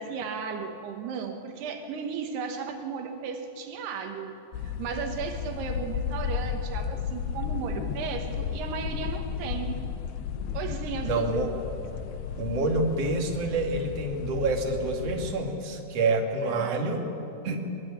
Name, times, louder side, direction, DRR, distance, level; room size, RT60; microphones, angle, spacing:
voice 1, 0.0-9.8 10.5-11.4 16.4-17.1, right 6 dB, 80° right, 5 dB, 3.3 m, -35 dB
sound 1, 4.5-15.3, left 7 dB, 85° left, 3.2 m, -34 dB
voice 2, 11.1-11.5 12.4-17.0 17.4-17.6, right 2 dB, 40° right, 1 dB, 3.2 m, -27 dB
23.5 x 23.0 x 8.6 m, 2.8 s
omnidirectional pair, 4.7 m